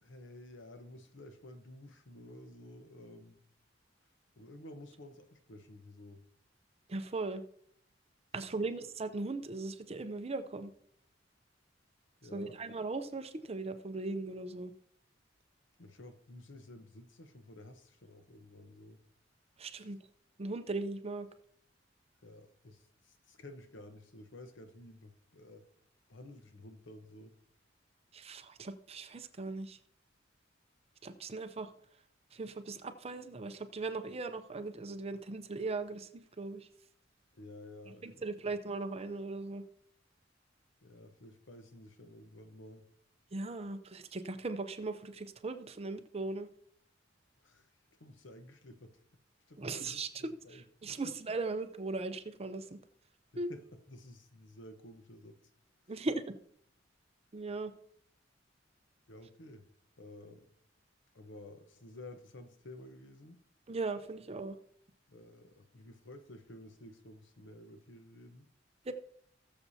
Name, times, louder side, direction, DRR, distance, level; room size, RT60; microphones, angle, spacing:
voice 1, 0.0-3.4 4.4-6.2 8.6-8.8 12.2-12.6 15.8-19.0 22.2-25.6 26.1-27.3 37.3-38.3 40.8-42.9 47.4-47.7 48.0-48.9 49.5-51.0 53.3-55.4 59.1-59.7 60.0-60.5 61.1-63.4 65.1-68.5, left 1 dB, 75° left, 8 dB, 1.0 m, -52 dB
voice 2, 6.9-7.4 8.3-10.7 12.3-14.7 19.6-20.0 20.4-21.3 28.1-29.8 31.0-31.7 32.3-36.7 38.0-39.6 43.3-46.5 49.6-52.8 53.4-53.5 55.9-56.4 57.3-57.7 63.7-64.5 68.8-68.9, right 3 dB, 35° right, 9 dB, 0.6 m, -38 dB
19.0 x 6.9 x 2.8 m, 0.65 s
head